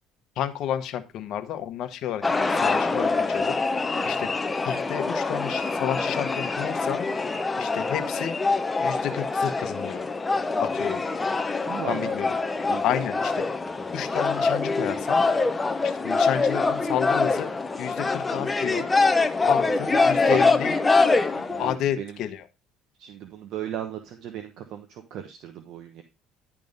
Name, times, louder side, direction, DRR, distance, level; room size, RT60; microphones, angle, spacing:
voice 1, 0.4-4.3 4.7-7.1 7.6-8.4 8.8-10.0 10.6-11.0 11.9-12.3 12.8-13.5 13.9-15.2 15.8-17.5 17.8-18.9 19.5-20.8 21.6-22.4, left 10 dB, 65° left, 8 dB, 1.1 m, -30 dB
sound 1, 2.2-21.8, left 3 dB, 15° left, 0.7 m, -24 dB
voice 2, 11.6-12.1 12.7-12.8 20.3-20.4 21.3-22.2 23.0-26.0, right 9 dB, 65° right, 6 dB, 1.0 m, -36 dB
11.0 x 3.7 x 5.2 m, 0.28 s
cardioid pair, 110°, 0 cm